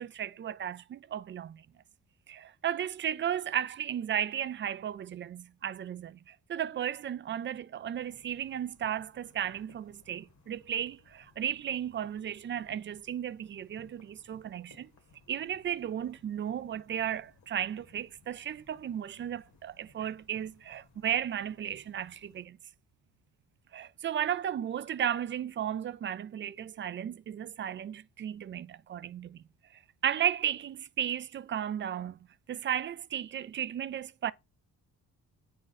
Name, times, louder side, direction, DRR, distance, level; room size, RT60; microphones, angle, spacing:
voice 1, 0.0-1.6 2.3-14.9 15.3-22.6 23.7-29.4 30.0-32.2 32.5-34.3, right 10 dB, 35° right, 0.4 m, -34 dB
sound 1, 8.0-22.5, left 4 dB, 55° left, 1.5 m, -63 dB
8.7 x 3.8 x 4.0 m
cardioid pair, 125°, 33 cm